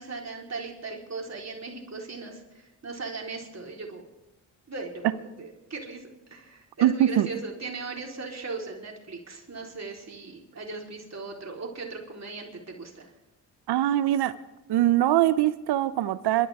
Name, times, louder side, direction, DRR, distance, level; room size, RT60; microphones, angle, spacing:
voice 1, 0.0-4.1 4.7-6.0 6.3-13.1, right 3 dB, 40° right, -1 dB, 4.1 m, -38 dB
voice 2, 6.8-7.3 13.7-14.3 14.7-16.5, right 13 dB, 80° right, 16 dB, 0.7 m, -22 dB
28.0 x 12.5 x 3.6 m, 0.97 s
supercardioid pair, 55°, 39 cm